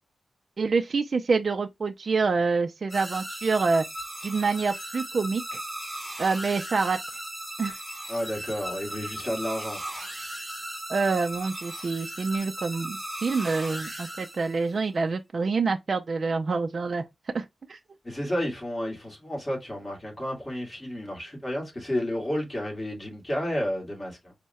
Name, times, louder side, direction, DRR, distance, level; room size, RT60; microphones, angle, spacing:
voice 1, 0.6-3.8 4.2-5.6 6.2-7.0 7.6-7.8 10.9-17.0 17.3-17.8, right 4 dB, 45° right, 0.4 m, -26 dB
sound 1, 2.9-14.8, right 1 dB, 5° right, 1.1 m, -37 dB
voice 2, 8.1-9.8 18.0-24.3, equal, 20° left, 1.9 m, -31 dB
4.6 x 2.1 x 4.0 m
wide cardioid pair, 160°, 0 cm